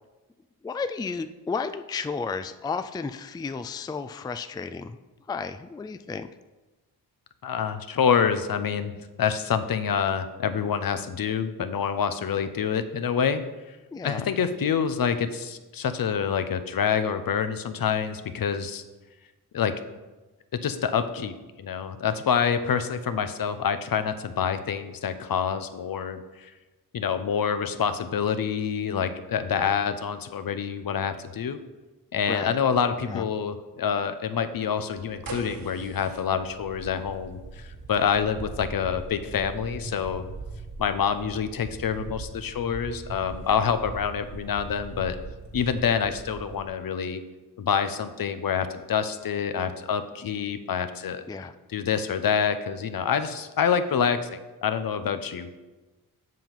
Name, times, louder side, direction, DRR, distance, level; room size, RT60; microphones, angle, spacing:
voice 1, 0.6-5.0 5.3-6.3 13.9-14.3 32.3-32.6 33.1-33.2 51.3-51.5, left 5 dB, 10° left, 10 dB, 0.3 m, -33 dB
voice 2, 7.4-13.4 14.0-18.8 19.5-19.7 20.5-26.5 26.9-31.6 32.1-37.6 37.9-40.3 40.8-45.2 45.5-47.2 47.6-51.2 51.7-54.3 54.6-55.6, left 7 dB, 65° left, 10 dB, 0.8 m, -27 dB
sound 1, 35.0-46.7, right 3 dB, 65° right, 1.5 m, -40 dB
7.5 x 5.9 x 5.3 m, 1.2 s
cardioid pair, 75°, 37 cm